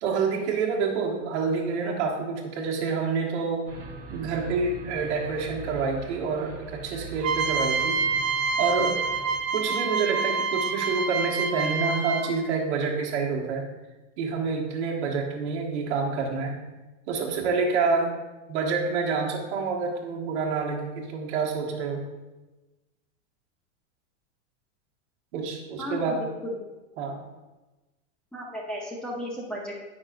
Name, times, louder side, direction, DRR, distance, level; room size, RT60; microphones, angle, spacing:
voice 1, 0.0-3.7 4.1-8.0 8.6-9.0 9.5-13.7 14.2-16.6 17.1-18.2 18.5-22.0 25.3-26.2 27.0-27.2, right 4 dB, 60° right, 0 dB, 1.4 m, -27 dB
sound 1, 3.7-9.4, right 5 dB, 35° right, 1.9 m, -42 dB
sound 2, 7.2-12.5, right 4 dB, 75° right, 0.8 m, -27 dB
voice 2, 25.8-26.6 28.3-29.7, equal, ahead, -5 dB, 0.7 m, -34 dB
9.2 x 5.8 x 2.5 m, 1.1 s
supercardioid pair, 150°, 39 cm